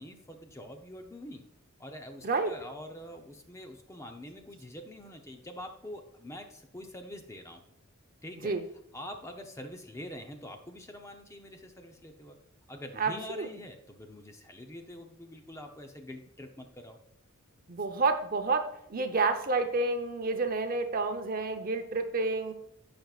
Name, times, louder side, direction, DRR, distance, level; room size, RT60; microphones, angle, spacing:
voice 1, 0.0-1.5 1.8-7.6 8.2-8.5 8.9-12.4 12.7-17.0, left 1 dB, 15° left, 5 dB, 0.7 m, -45 dB
voice 2, 13.0-13.5 17.7-22.5, right 3 dB, 45° right, 7 dB, 0.8 m, -29 dB
15.5 x 5.2 x 2.4 m, 0.75 s
head